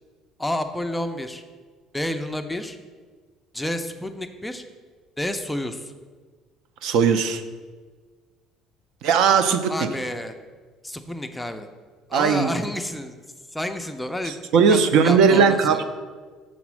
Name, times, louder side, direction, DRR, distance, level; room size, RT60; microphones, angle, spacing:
voice 1, 0.4-1.4 1.9-2.8 3.5-4.6 5.2-5.9 9.7-10.3 10.8-11.7 12.1-13.2 13.5-14.4 14.7-15.8, left 1 dB, 5° left, 6 dB, 0.4 m, -29 dB
voice 2, 6.8-7.4 9.0-9.9 12.1-12.5 14.5-15.8, right 6 dB, 65° right, 10 dB, 0.5 m, -18 dB
6.2 x 4.1 x 6.0 m, 1.5 s
cardioid pair, 160°, 0 cm